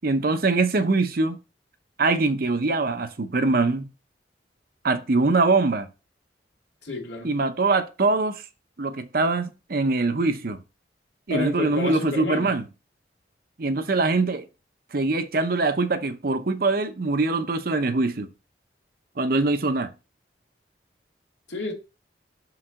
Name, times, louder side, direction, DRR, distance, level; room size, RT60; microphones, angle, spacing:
voice 1, 0.0-1.4 2.0-3.9 4.8-5.9 7.2-8.4 8.8-10.6 11.3-12.6 13.6-14.5 14.9-18.3 19.2-19.9, right 3 dB, 55° right, 0.7 m, -23 dB
voice 2, 6.8-7.3 11.3-12.5 21.5-21.7, left 2 dB, 90° left, 2.1 m, -30 dB
6.6 x 4.7 x 3.7 m
head